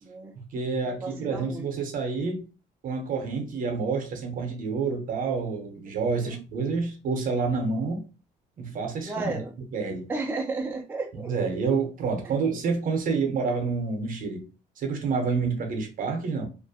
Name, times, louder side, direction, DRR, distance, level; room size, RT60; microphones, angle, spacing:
voice 1, 0.0-0.3 0.8-1.7 6.1-6.4 9.0-9.5 10.1-11.3 12.2-12.3, right 3 dB, 10° right, 0.4 m, -33 dB
voice 2, 0.5-2.4 2.8-8.0 8.6-9.4 9.7-10.1 11.2-14.4 14.8-16.5, right 4 dB, 55° right, 0.7 m, -28 dB
2.4 x 2.1 x 2.6 m
cardioid pair, 110°, 17 cm